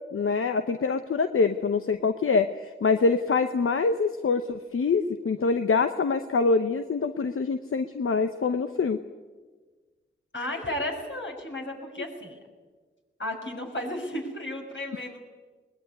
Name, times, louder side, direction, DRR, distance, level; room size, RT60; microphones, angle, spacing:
voice 1, 0.1-9.0, left 4 dB, 90° left, 8 dB, 0.9 m, -25 dB
voice 2, 10.3-12.4 13.2-15.2, left 1 dB, 65° left, 1 dB, 6.0 m, -33 dB
21.5 x 20.5 x 9.7 m, 1.4 s
wide cardioid pair, 55°, 21 cm